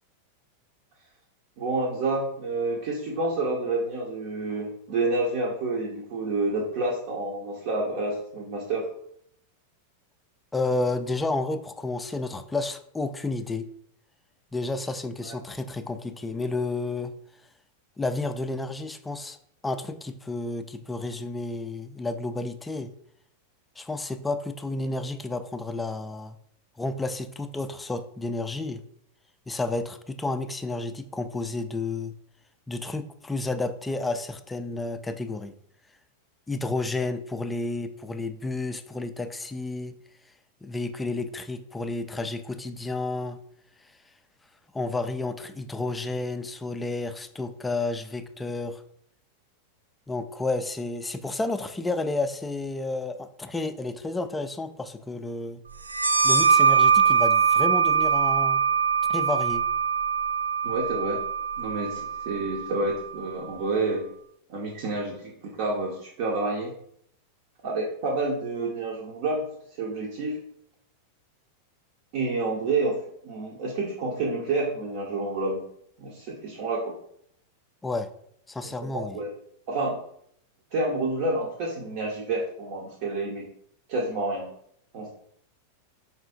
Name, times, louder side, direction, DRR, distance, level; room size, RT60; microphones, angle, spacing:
voice 1, 1.6-8.9 15.2-15.4 60.6-61.2 61.6-64.1 64.5-66.7 67.6-69.5 69.8-70.4 72.1-73.0 73.2-75.7 76.0-77.0 78.6-79.3 79.7-80.0 80.7-83.5 83.9-84.5 84.9-85.1, right 2 dB, 50° right, -1 dB, 0.7 m, -29 dB
voice 2, 10.5-13.7 14.5-17.1 18.0-19.4 19.6-22.9 23.8-26.4 26.8-28.8 29.5-32.1 32.7-35.5 36.5-40.0 40.6-43.4 44.7-48.8 50.1-55.6 56.2-58.6 59.1-59.7 77.8-78.1 78.5-79.2, left 2 dB, 10° left, 9 dB, 0.3 m, -31 dB
sound 1, 55.9-63.2, right 6 dB, 80° right, 0.3 m, -23 dB
4.7 x 2.8 x 3.6 m, 0.69 s
figure-of-eight pair, 90°, 0 cm